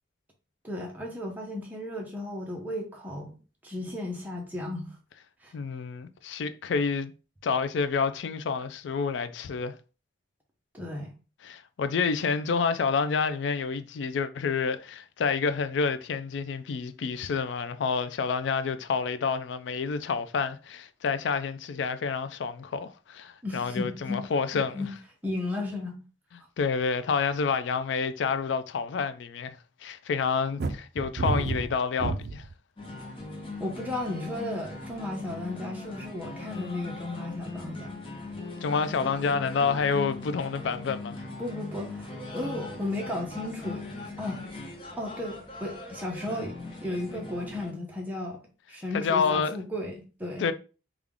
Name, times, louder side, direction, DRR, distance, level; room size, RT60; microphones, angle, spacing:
voice 1, 0.6-3.4 3.6-4.9 5.4-5.5 10.7-11.1 23.4-24.2 24.5-24.9 25.2-26.0 33.6-38.0 41.4-43.8 44.2-44.4 45.0-46.5 46.8-48.4 48.7-50.5, left 1 dB, 10° right, 0.8 m, -34 dB
voice 2, 5.5-7.1 7.4-9.8 11.4-24.9 26.6-32.5 38.6-41.2 48.9-49.6 50.4-50.5, left 5 dB, 80° left, 0.4 m, -28 dB
sound 1, 30.6-32.5 33.2-33.6, right 3 dB, 60° right, 0.4 m, -30 dB
sound 2, 32.8-47.7, left 2 dB, 30° left, 0.7 m, -40 dB
3.5 x 2.4 x 3.5 m
head